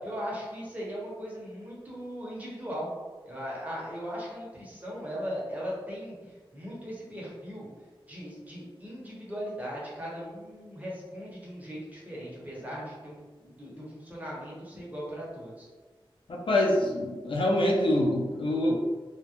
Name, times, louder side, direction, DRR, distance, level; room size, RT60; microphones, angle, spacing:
voice 1, 0.0-2.9 3.2-7.7 8.1-15.7, equal, 15° right, -6 dB, 0.9 m, -38 dB
voice 2, 16.3-18.8, left 1 dB, 70° left, -1 dB, 0.4 m, -25 dB
2.4 x 2.1 x 2.8 m, 1.3 s
wide cardioid pair, 70°, 9 cm